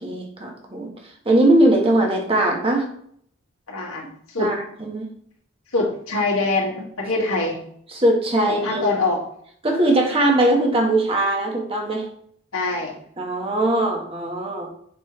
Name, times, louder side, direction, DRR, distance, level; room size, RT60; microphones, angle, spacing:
voice 1, 0.0-2.9 4.4-5.1 7.2-7.3 7.9-8.9 9.6-12.1 13.2-14.7, right 1 dB, 25° right, 0 dB, 1.5 m, -20 dB
voice 2, 3.7-4.5 5.7-7.6 8.5-9.2 12.5-12.9, left 3 dB, 85° left, -2 dB, 2.3 m, -24 dB
7.6 x 5.6 x 3.3 m, 0.64 s
head